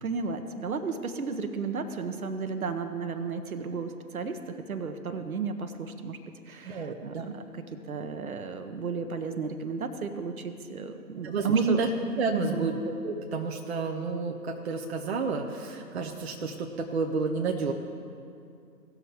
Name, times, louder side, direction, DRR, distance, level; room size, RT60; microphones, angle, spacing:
voice 1, 0.0-6.2 6.5-11.8 12.5-12.7, right 5 dB, 60° right, 8 dB, 1.1 m, -33 dB
voice 2, 6.6-7.4 11.2-11.9 12.2-17.7, right 4 dB, 40° right, 2 dB, 0.8 m, -30 dB
18.0 x 6.5 x 3.4 m, 2.4 s
figure-of-eight pair, 140°, 48 cm